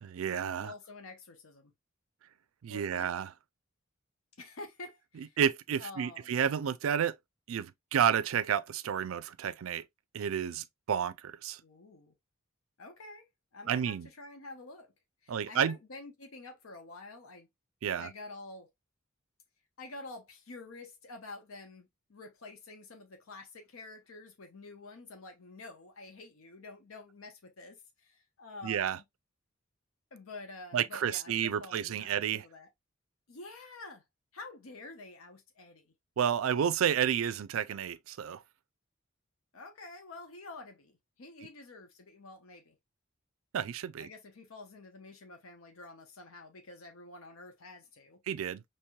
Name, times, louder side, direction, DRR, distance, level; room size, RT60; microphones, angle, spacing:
voice 1, 0.0-0.7 2.6-3.3 5.4-7.2 7.5-9.8 10.1-11.6 13.7-14.1 15.3-15.8 17.8-18.1 28.6-29.0 30.7-32.4 36.2-38.4 43.5-44.1 48.3-48.6, right 8 dB, 80° right, 0.4 m, -31 dB
voice 2, 0.6-1.7 2.7-3.2 4.4-5.4 5.8-6.4 11.6-12.1 12.8-13.3 13.5-14.9 15.2-17.5 17.9-18.7 19.8-29.0 30.1-32.7 33.3-34.0 34.3-35.9 39.5-42.8 44.0-48.2, left 2 dB, 90° left, 0.8 m, -48 dB
4.6 x 3.0 x 2.2 m
head